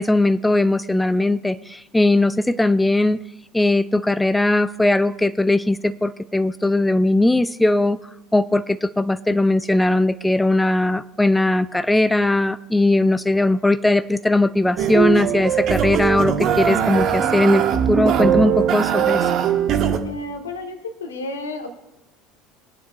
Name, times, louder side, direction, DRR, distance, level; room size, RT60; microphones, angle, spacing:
voice 1, 0.0-3.2 3.5-8.0 8.3-17.6 17.9-19.3, left 2 dB, 5° left, 14 dB, 0.3 m, -19 dB
sound 1, 14.8-20.0, right 8 dB, 45° right, 1.1 m, -20 dB
voice 2, 20.0-21.7, left 2 dB, 75° left, 6 dB, 1.4 m, -31 dB
21.5 x 9.9 x 2.3 m, 0.91 s
figure-of-eight pair, 70°, 0 cm